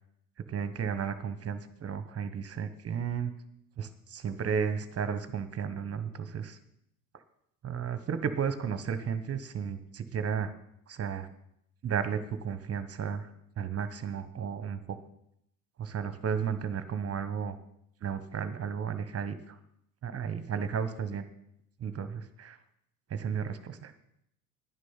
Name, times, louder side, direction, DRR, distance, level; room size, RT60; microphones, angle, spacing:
voice 1, 0.5-3.3 3.8-6.6 7.6-10.5 10.9-11.3 11.8-13.3 13.6-15.0 15.8-17.6 18.0-19.6 20.0-21.3 21.8-22.6 23.1-23.9, right 7 dB, 35° right, 11 dB, 1.3 m, -33 dB
11.0 x 9.7 x 5.8 m, 0.75 s
hypercardioid pair, 70°, 44 cm